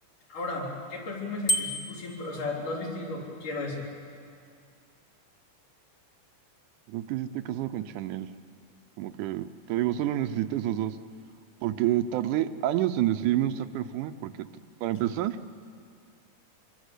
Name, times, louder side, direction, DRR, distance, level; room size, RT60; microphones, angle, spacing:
voice 1, 0.3-3.9, left 2 dB, 80° left, -2 dB, 5.4 m, -34 dB
Bicycle bell, 1.5-2.1, equal, 35° left, 1.3 m, -28 dB
voice 2, 6.9-8.3 9.0-11.0 11.6-14.3 14.8-15.4, right 12 dB, 80° right, 10 dB, 2.2 m, -28 dB
25.0 x 23.0 x 8.3 m, 2.3 s
omnidirectional pair, 3.6 m